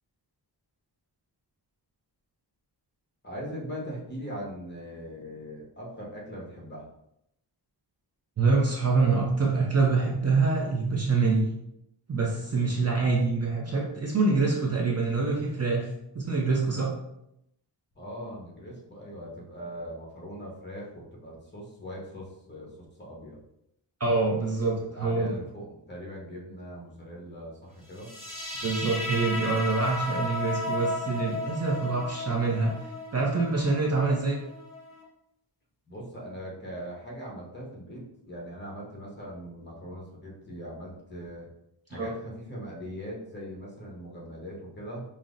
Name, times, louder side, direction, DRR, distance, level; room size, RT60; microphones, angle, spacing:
voice 1, 3.2-6.9 18.0-23.4 24.6-28.1 35.9-41.5 41.9-45.0, equal, 25° left, -3 dB, 0.9 m, -40 dB
voice 2, 8.4-11.5 12.1-15.9 16.1-16.9 24.0-25.4 28.6-32.7 33.1-34.4 41.9-42.1, right 3 dB, 35° right, -2 dB, 0.5 m, -25 dB
sound 1, 28.0-35.0, left 2 dB, 45° left, 1.4 m, -34 dB
5.4 x 2.0 x 2.4 m, 0.80 s
wide cardioid pair, 145°, 45 cm